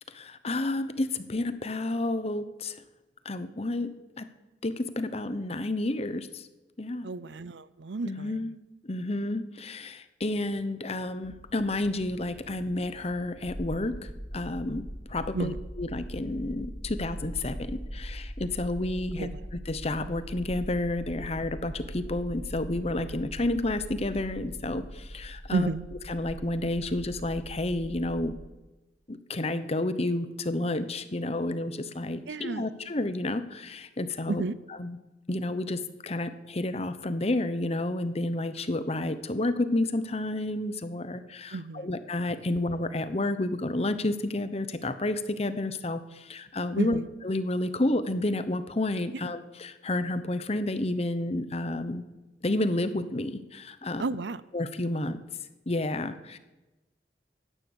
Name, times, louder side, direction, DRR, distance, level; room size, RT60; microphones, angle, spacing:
voice 1, 0.1-2.8 3.2-3.9 4.2-4.3 4.6-6.5 6.8-7.1 8.0-8.5 8.8-14.8 15.1-25.7 26.1-28.3 29.1-34.4 34.8-35.0 35.3-47.0 47.2-52.0 52.4-54.0 54.5-55.2 55.7-56.4, left 2 dB, 35° left, 12 dB, 0.9 m, -30 dB
voice 2, 7.0-8.5 15.3-15.6 19.2-19.4 25.5-25.8 32.3-32.7 34.3-34.5 41.5-42.0 46.8-47.1 54.0-54.4, right 3 dB, 85° right, 17 dB, 0.6 m, -32 dB
sound 1, 11.2-28.5, equal, 5° left, 1.1 m, -41 dB
16.0 x 11.0 x 7.1 m, 1.1 s
head